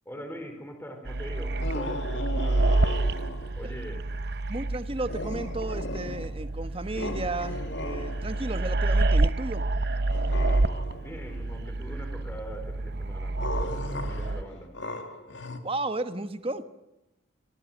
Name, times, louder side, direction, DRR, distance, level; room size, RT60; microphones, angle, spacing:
voice 1, 0.0-2.8 3.5-4.0 11.0-14.7, equal, 10° left, 5 dB, 4.5 m, -42 dB
sound 1, 1.1-14.4, right 2 dB, 55° right, 0.8 m, -28 dB
sound 2, 1.6-3.6 5.1-6.5 6.9-8.6 10.1-11.2 13.4-15.6, left 1 dB, 65° left, 2.5 m, -37 dB
voice 2, 4.5-9.6 15.6-16.6, right 2 dB, 30° right, 10 dB, 1.3 m, -33 dB
26.0 x 18.5 x 9.1 m, 0.95 s
head